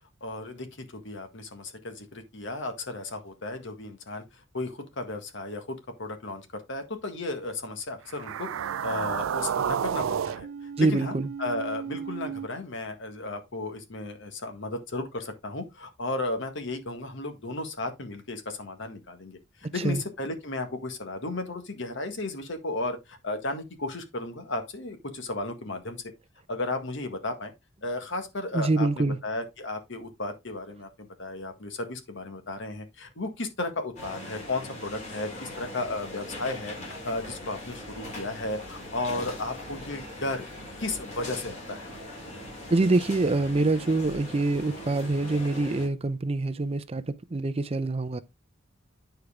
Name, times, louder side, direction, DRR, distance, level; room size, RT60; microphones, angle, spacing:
voice 1, 0.2-26.0 26.5-27.5 27.8-40.5 40.8-41.9, left 2 dB, 65° left, 1.7 m, -34 dB
sound 1, 8.1-12.5, right 8 dB, 85° right, 0.4 m, -31 dB
voice 2, 10.8-11.3 19.8-20.0 28.5-29.2 42.7-48.2, right 2 dB, 30° right, 0.5 m, -25 dB
sound 2, 34.0-45.9, left 1 dB, 40° left, 3.8 m, -40 dB
9.6 x 4.6 x 3.6 m
head